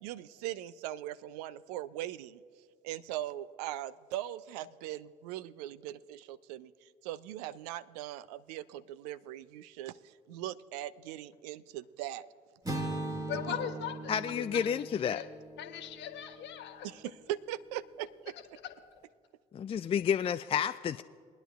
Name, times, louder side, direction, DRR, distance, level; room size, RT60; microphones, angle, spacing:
voice 1, 0.0-2.4 2.8-6.7 7.0-12.3 16.8-18.3, right 13 dB, 70° right, 17 dB, 0.4 m, -40 dB
sound 1, 12.6-16.7, right 2 dB, 15° right, 2.0 m, -40 dB
voice 2, 13.1-14.4 14.7-14.8 15.1-15.3 15.6-16.9 18.6-18.7, left 10 dB, 60° left, 7 dB, 1.3 m, -39 dB
voice 3, 14.1-15.2 19.5-21.0, left 8 dB, 25° left, 11 dB, 0.3 m, -30 dB
23.0 x 10.5 x 2.4 m, 2.1 s
figure-of-eight pair, 50°, 21 cm